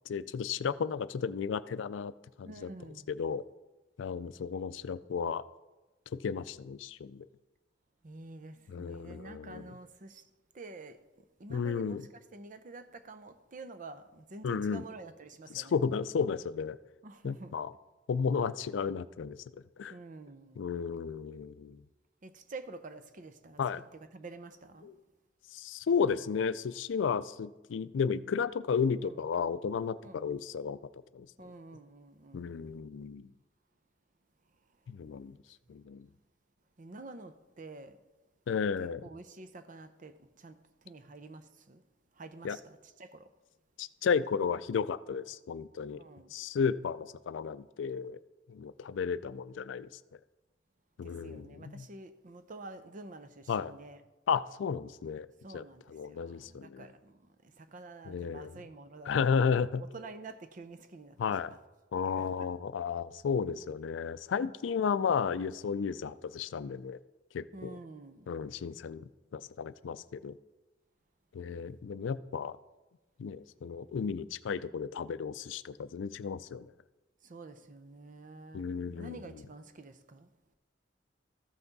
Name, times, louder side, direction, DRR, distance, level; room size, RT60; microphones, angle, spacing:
voice 1, 0.1-2.1 2.4-2.7 3.1-3.4 4.0-5.4 6.1-7.3 8.7-9.7 11.5-12.1 14.4-14.8 15.5-16.8 17.2-17.7 18.1-19.4 19.8-19.9 20.6-21.8 23.6-23.8 24.8-25.0 25.5-30.8 31.1-31.3 32.3-33.3 34.9-35.4 35.7-36.1 38.5-39.0 42.4-42.6 43.8-46.0 46.3-48.2 48.5-49.9 51.0-51.9 53.5-53.7 54.3-55.3 55.5-56.9 58.1-58.6 59.1-59.8 61.2-61.5 61.9-67.0 67.3-67.8 68.3-69.0 69.3-70.3 71.3-72.6 73.2-76.7 78.5-79.2, left 6 dB, 80° left, 0.4 m, -33 dB
voice 2, 2.5-3.1 8.0-10.3 10.5-11.0 11.4-12.0 12.3-15.7 17.0-17.5 19.9-20.7 22.2-23.6 24.1-24.9 29.0-29.2 30.0-30.4 31.4-32.6 36.8-38.0 38.8-40.6 40.8-41.8 42.2-43.3 46.0-46.3 51.0-54.0 55.4-59.4 59.8-61.2 62.0-62.5 67.5-68.4 77.2-78.6 78.9-80.3, right 3 dB, 45° right, 0.6 m, -48 dB
14.0 x 5.9 x 4.0 m
head